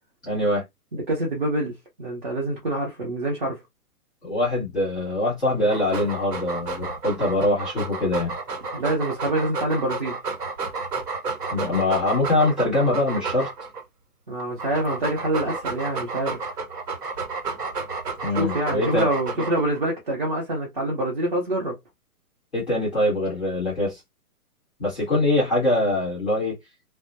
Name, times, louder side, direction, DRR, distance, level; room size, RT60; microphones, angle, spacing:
voice 1, 0.2-0.6 4.2-8.4 11.5-13.5 18.2-19.1 22.5-24.0 24.8-26.6, left 1 dB, 5° left, 0.7 m, -23 dB
voice 2, 0.9-1.7 2.0-3.6 8.7-10.2 14.3-16.5 18.3-21.8, right 1 dB, 35° right, 0.7 m, -26 dB
Dog, 5.6-13.8 14.4-19.8, right 4 dB, 85° right, 1.3 m, -31 dB
2.2 x 2.0 x 2.8 m
hypercardioid pair, 175°, 46 cm